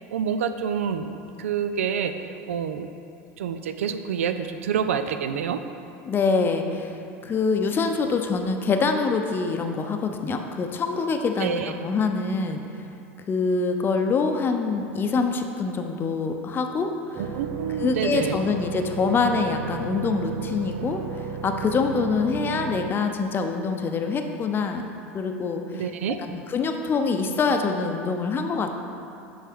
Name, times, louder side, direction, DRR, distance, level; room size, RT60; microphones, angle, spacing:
voice 1, 0.1-2.1 2.5-2.9 3.4-5.6 11.4-11.7 17.3-18.5 25.7-26.2, right 7 dB, 85° right, 9 dB, 0.4 m, -27 dB
voice 2, 6.0-12.8 13.3-17.3 17.8-24.9 25.1-25.8 26.2-28.7, left 4 dB, 30° left, 5 dB, 0.6 m, -25 dB
sound 1, 17.1-22.9, right 6 dB, 50° right, 0.6 m, -34 dB
7.4 x 5.5 x 3.6 m, 2.6 s
hypercardioid pair, 95°, 7 cm